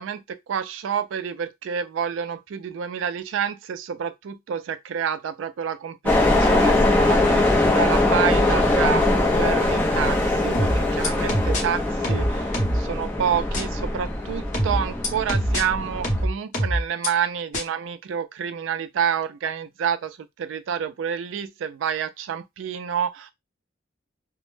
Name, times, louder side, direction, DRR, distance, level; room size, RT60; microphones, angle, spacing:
voice 1, 0.0-23.3, right 8 dB, 75° right, 0.3 m, -28 dB
sound 1, 6.1-16.2, left 2 dB, 10° left, 0.5 m, -22 dB
sound 2, 10.5-11.6 12.0-12.8 13.5-13.6 14.5-15.6 16.0-17.1 17.5-17.6, equal, 40° left, 0.8 m, -23 dB
2.0 x 2.0 x 3.1 m
head